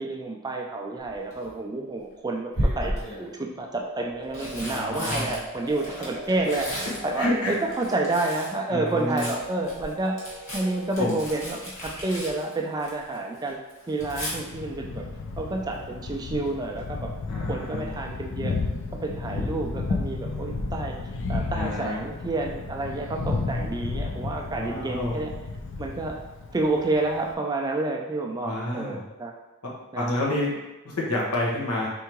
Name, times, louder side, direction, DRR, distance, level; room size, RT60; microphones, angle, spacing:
voice 1, 0.0-10.2 10.5-13.6 13.9-15.0 15.4-17.1 17.4-18.6 19.0-25.3 25.8-26.2 26.5-29.3 29.9-30.1, right 2 dB, 15° right, 1 dB, 0.4 m, -29 dB
Tearing, 1.0-1.5 2.5-3.3 4.1-8.6 8.9-13.2 13.5-14.3 16.2-16.5 16.8-16.9, equal, 30° left, 1.5 m, -34 dB
sound 1, 3.7-11.0, right 1 dB, 75° right, 0.8 m, -42 dB
voice 2, 4.7-5.4 7.2-7.6 8.7-9.3 11.0-11.2 17.3-17.9 21.5-22.0 24.5-25.1 28.4-29.0 29.6-30.5 30.8-31.9, left 1 dB, 85° left, -4 dB, 1.2 m, -28 dB
Thunder, 14.0-27.3, left 3 dB, 60° left, 0.4 m, -33 dB
4.5 x 3.4 x 3.0 m, 1.0 s
head